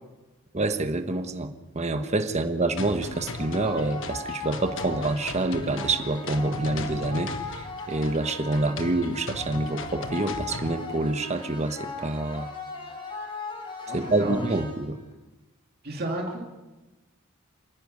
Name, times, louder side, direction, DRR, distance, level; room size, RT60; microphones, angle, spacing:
voice 1, 0.5-12.5 13.9-15.0, right 2 dB, 30° right, 8 dB, 1.2 m, -27 dB
sound 1, 2.8-10.8, left 3 dB, 60° left, 1.3 m, -39 dB
sound 2, 3.1-15.1, left 3 dB, 25° left, 4.1 m, -38 dB
voice 2, 13.9-14.4 15.8-16.4, right 1 dB, 45° right, 0 dB, 2.6 m, -32 dB
27.5 x 10.5 x 9.5 m, 1.2 s
head